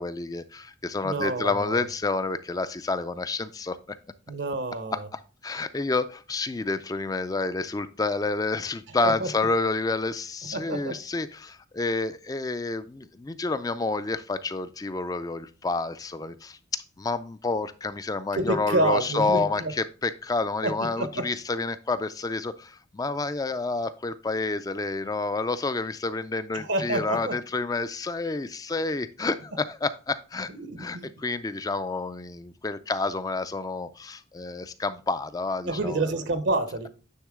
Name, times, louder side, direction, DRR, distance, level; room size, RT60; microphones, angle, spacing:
voice 1, 0.0-3.8 4.9-30.5 30.8-36.2, left 3 dB, 20° left, 0.3 m, -29 dB
voice 2, 1.0-1.9 4.3-5.1 9.0-9.5 10.5-11.0 18.3-19.7 20.6-21.2 26.5-27.4 30.5-31.1 35.6-36.9, right 2 dB, 70° right, 0.7 m, -28 dB
9.3 x 3.7 x 3.6 m
head